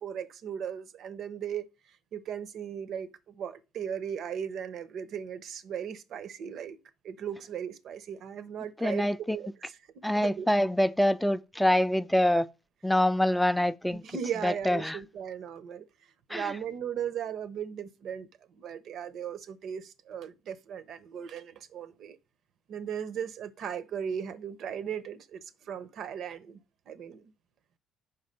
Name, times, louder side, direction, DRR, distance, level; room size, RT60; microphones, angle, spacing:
voice 1, 0.0-1.7 2.1-6.8 7.0-9.8 10.1-10.5 13.9-15.9 16.3-22.2 22.7-26.6 26.9-27.3, right 8 dB, 65° right, 0.6 m, -37 dB
voice 2, 8.8-9.4 10.0-12.5 12.8-14.0 14.4-15.0 16.3-16.4, left 1 dB, 5° left, 0.3 m, -25 dB
5.7 x 4.4 x 5.2 m
cardioid pair, 80°, 0 cm